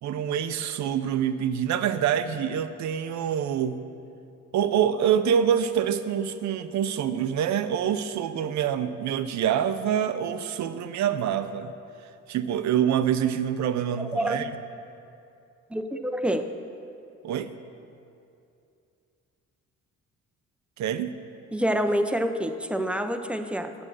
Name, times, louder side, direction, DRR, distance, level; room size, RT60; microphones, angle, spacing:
voice 1, 0.0-3.8 4.5-11.7 12.3-14.5 17.2-17.5 20.8-21.2, right 9 dB, 70° right, 11 dB, 0.6 m, -26 dB
voice 2, 14.0-14.5 15.7-16.5 21.5-23.8, equal, 5° right, 8 dB, 0.5 m, -27 dB
8.7 x 7.8 x 6.2 m, 2.6 s
cardioid pair, 90°, 30 cm